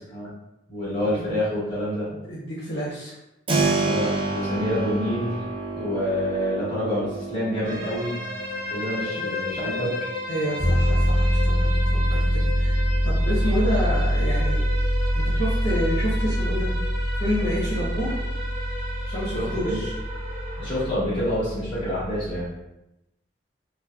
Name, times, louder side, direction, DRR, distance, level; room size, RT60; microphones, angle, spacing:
voice 1, 0.7-2.1 3.7-5.3 5.7-8.1 8.7-9.9 19.3-19.8 20.6-22.5, equal, 30° left, -9 dB, 1.3 m, -27 dB
voice 2, 2.1-3.1 10.3-11.5 11.9-12.8 13.0-14.6 15.1-16.7 17.2-18.2 19.1-19.9, equal, 60° left, -8 dB, 0.8 m, -29 dB
Keyboard (musical), 3.5-14.2, right 3 dB, 30° right, 0.3 m, -31 dB
sound 1, 7.6-20.9, left 1 dB, 55° right, 1.0 m, -34 dB
sound 2, 10.6-22.5, equal, 90° right, 0.9 m, -24 dB
3.1 x 2.1 x 2.3 m, 0.89 s
head